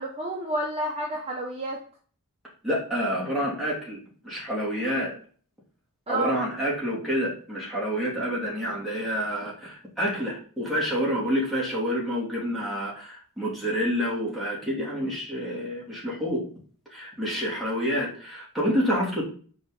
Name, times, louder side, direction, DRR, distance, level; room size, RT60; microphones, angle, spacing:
voice 1, 0.0-1.8 6.1-6.4, right 1 dB, 25° right, -2 dB, 1.1 m, -30 dB
voice 2, 2.6-5.1 6.1-16.4 16.9-19.2, equal, ahead, -6 dB, 3.1 m, -28 dB
6.4 x 4.7 x 5.5 m, 0.43 s
head